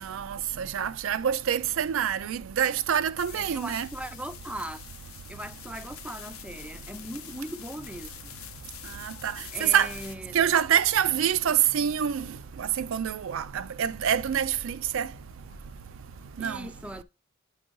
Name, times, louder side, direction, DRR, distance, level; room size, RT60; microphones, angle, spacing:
voice 1, 0.0-3.9 9.0-9.3 9.6-9.9 10.3-12.3 12.6-15.1 16.4-16.7, right 9 dB, 70° right, 0.4 m, -26 dB
sound 1, 3.2-10.2, left 12 dB, 85° left, 0.7 m, -46 dB
voice 2, 3.3-4.8 5.3-8.4 9.5-10.4 16.4-17.0, right 1 dB, 5° right, 0.4 m, -39 dB
sound 2, 7.6-16.5, equal, 50° left, 0.8 m, -52 dB
8.9 x 4.3 x 3.0 m
head